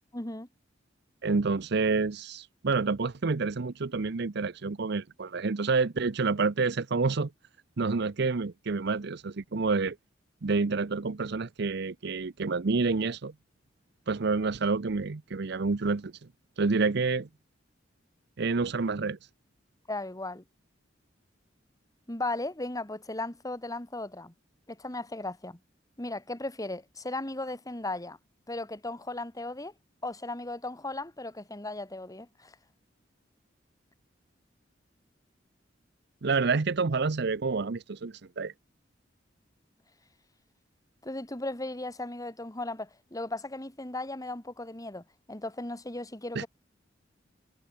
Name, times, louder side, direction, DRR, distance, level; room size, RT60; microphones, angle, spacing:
voice 1, 0.1-0.5 19.9-20.4 22.1-24.3 24.7-25.6 26.0-28.2 28.5-29.7 30.0-32.6 41.0-46.5, left 2 dB, 20° left, 2.4 m, -36 dB
voice 2, 1.2-7.3 7.8-10.0 10.4-13.3 14.1-16.1 16.6-17.3 18.4-19.2 36.2-38.5 46.4-46.5, right 4 dB, 60° right, 0.7 m, -28 dB
head